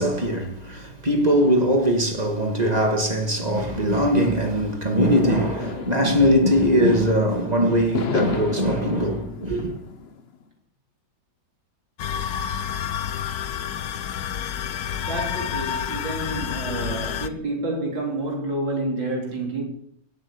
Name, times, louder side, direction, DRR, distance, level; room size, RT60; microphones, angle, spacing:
voice 1, 0.0-9.7, equal, 20° right, 2.3 m, -21 dB
sound 1, 5.6-7.3 7.9-10.2, left 5 dB, 40° left, 1.0 m, -32 dB
sound 2, 12.0-17.3, left 9 dB, 65° left, 1.2 m, -29 dB
voice 2, 15.0-19.6, right 2 dB, 85° right, 4.1 m, -29 dB
17.5 x 8.7 x 7.3 m
omnidirectional pair, 2.0 m